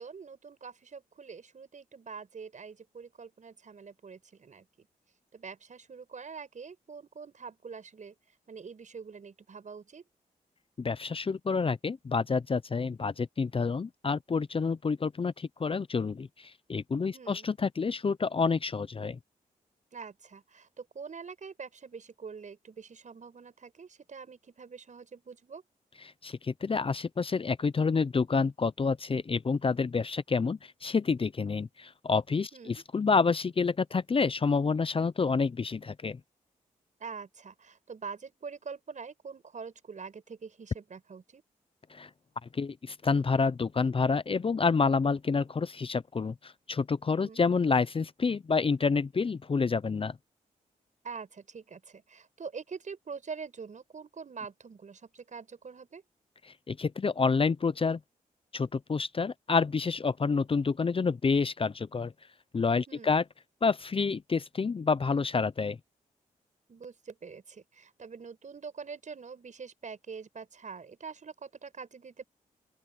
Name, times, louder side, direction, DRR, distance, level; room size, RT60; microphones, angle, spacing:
voice 1, 0.0-4.9 5.3-8.1 8.5-10.0 17.1-17.5 19.9-25.6 32.5-32.8 37.0-41.4 47.2-47.5 51.0-56.0 62.9-63.2 66.7-72.2, right 5 dB, 55° right, 6.6 m, -45 dB
voice 2, 10.8-19.2 26.2-36.2 41.9-42.1 42.4-50.2 56.7-58.0 58.5-62.1 62.5-63.2 63.6-65.8, left 4 dB, 35° left, 0.7 m, -28 dB
open air
cardioid pair, 55°, 15 cm